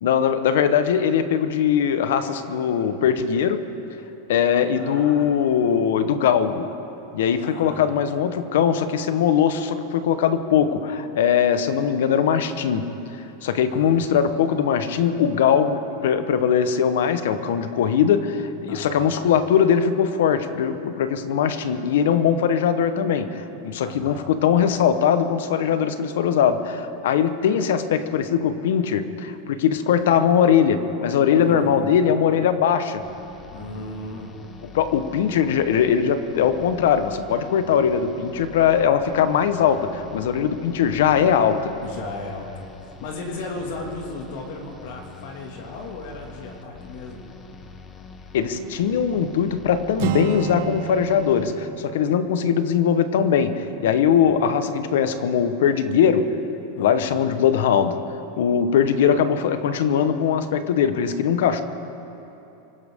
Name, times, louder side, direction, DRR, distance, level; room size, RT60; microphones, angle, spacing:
voice 1, 0.0-3.7 4.3-6.7 7.1-12.9 13.4-33.0 34.7-41.7 48.3-56.4 56.8-58.0 58.4-61.6, left 8 dB, 70° left, 11 dB, 1.0 m, -21 dB
voice 2, 4.7-5.3 7.4-8.1 13.7-14.1 18.7-19.2 23.8-24.3 31.3-31.9 33.5-34.3 41.8-42.5 43.0-47.3 54.1-54.4 56.7-57.2, left 2 dB, 55° left, 1 dB, 2.1 m, -36 dB
sound 1, 33.0-51.6, left 4 dB, 20° left, 0.9 m, -44 dB
Acoustic guitar, 50.0-53.9, right 11 dB, 50° right, 0.9 m, -32 dB
25.0 x 15.0 x 3.6 m, 2.9 s
supercardioid pair, 170°, 0 cm